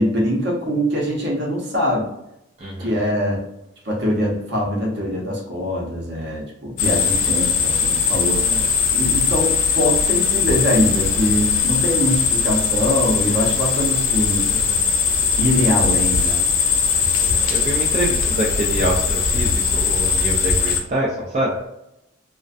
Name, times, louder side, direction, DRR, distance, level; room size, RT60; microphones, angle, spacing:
voice 1, 0.0-2.1 2.8-3.5 3.8-8.5 8.9-14.5 15.4-16.4, equal, 55° right, -1 dB, 0.7 m, -22 dB
voice 2, 2.6-3.0 8.4-8.7 14.5-14.9 17.2-21.6, right 1 dB, 35° right, -5 dB, 0.4 m, -26 dB
sound 1, 6.8-20.8, left 5 dB, 90° left, 0.4 m, -20 dB
2.4 x 2.1 x 2.4 m, 0.85 s
head